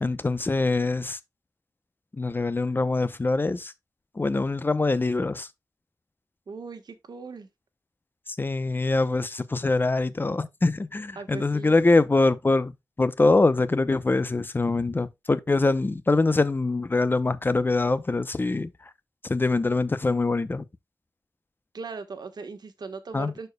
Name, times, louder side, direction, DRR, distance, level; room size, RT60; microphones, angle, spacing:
voice 1, 0.0-1.2 2.2-3.7 4.2-5.5 8.4-12.7 13.0-18.7 19.2-20.6 23.1-23.3, left 3 dB, 30° left, 0.6 m, -24 dB
voice 2, 6.5-7.5 11.1-11.8 21.7-23.5, right 4 dB, 85° right, 1.2 m, -39 dB
11.5 x 4.4 x 2.2 m
wide cardioid pair, 105°, 7 cm